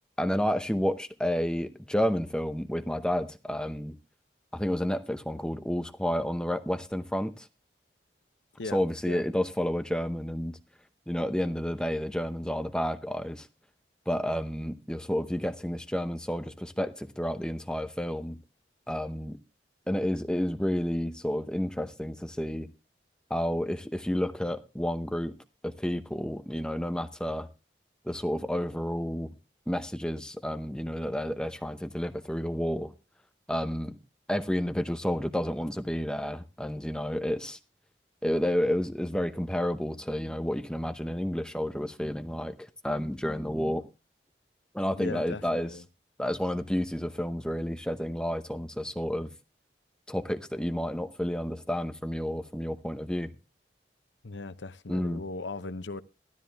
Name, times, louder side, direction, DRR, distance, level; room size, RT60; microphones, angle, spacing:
voice 1, 0.2-3.9 4.5-7.5 8.7-10.6 11.1-13.5 14.1-18.4 18.9-19.4 19.9-22.7 23.3-25.4 25.6-27.5 28.0-29.3 29.7-32.9 33.5-34.0 34.3-37.6 38.2-43.8 44.7-45.7 46.2-49.3 50.1-53.3 54.9-55.2, equal, 5° left, 0.7 m, -30 dB
voice 2, 44.9-45.8 54.2-56.0, left 3 dB, 85° left, 0.8 m, -38 dB
13.0 x 13.0 x 3.4 m
head